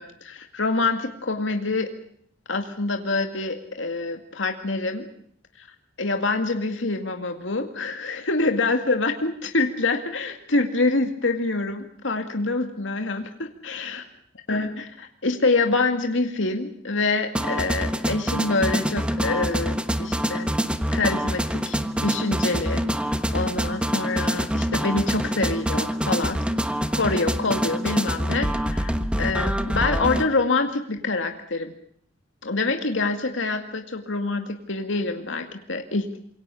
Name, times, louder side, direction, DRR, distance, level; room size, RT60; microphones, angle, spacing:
voice 1, 0.0-1.9 2.5-5.1 5.6-5.7 6.0-14.0 14.5-20.5 20.9-22.8 23.3-26.4 26.9-28.9 29.2-31.7 32.4-36.2, left 3 dB, 80° left, 5 dB, 2.2 m, -26 dB
sound 1, 17.3-30.3, equal, 5° right, 1.2 m, -25 dB
27.0 x 23.5 x 7.0 m, 0.65 s
head